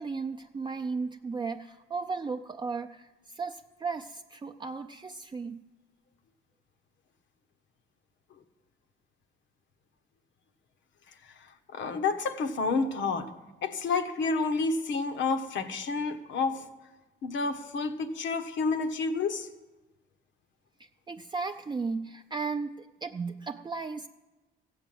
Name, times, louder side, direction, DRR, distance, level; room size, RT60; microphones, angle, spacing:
voice 1, 0.0-5.6 21.1-24.1, right 4 dB, 25° right, 6 dB, 0.5 m, -35 dB
voice 2, 11.2-13.3 13.6-16.7 17.2-19.5, left 4 dB, 70° left, 9 dB, 1.2 m, -30 dB
15.0 x 7.9 x 7.7 m, 1.1 s
cardioid pair, 90°, 20 cm